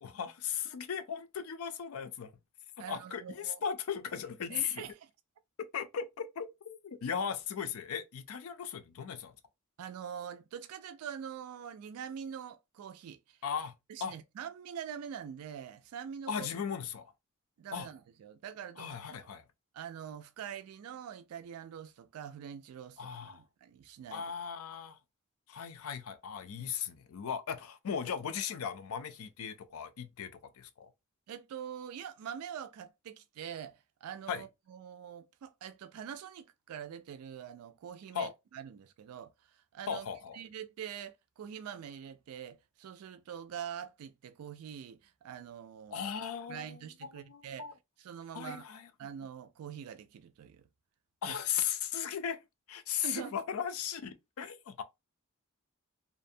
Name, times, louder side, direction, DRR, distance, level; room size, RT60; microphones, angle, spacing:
voice 1, 0.0-2.3 2.9-4.9 5.7-9.4 13.4-13.7 14.0-14.1 16.3-17.1 17.7-17.9 18.8-19.5 23.0-23.4 24.1-25.0 25.5-30.9 34.3-34.4 38.1-38.3 39.9-40.4 45.9-47.7 48.3-48.9 51.2-52.4 52.7-54.8, left 7 dB, 70° left, 0.4 m, -37 dB
voice 2, 2.8-3.6 4.5-5.1 9.8-13.4 13.9-16.5 17.6-19.2 19.7-24.2 31.3-40.1 40.3-46.1 46.5-47.7 48.0-48.6 49.0-50.7 51.3-51.4 53.0-53.4, right 8 dB, 80° right, 0.3 m, -44 dB
2.5 x 2.1 x 2.6 m
head